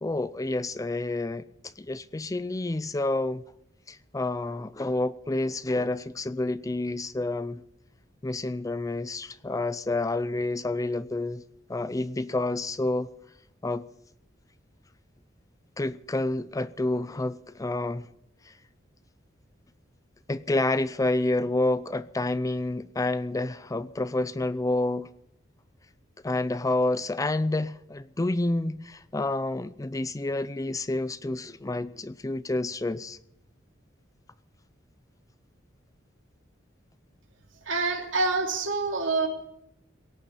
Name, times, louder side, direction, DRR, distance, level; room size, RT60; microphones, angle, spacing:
voice 1, 0.0-3.4 3.9-7.6 8.2-11.4 11.7-13.1 13.6-13.9 15.8-18.1 18.5-18.6 20.3-25.1 26.2-33.2, left 2 dB, 20° left, 0.5 m, -29 dB
voice 2, 37.6-39.3, right 3 dB, 85° right, 2.9 m, -26 dB
17.5 x 7.1 x 9.9 m
head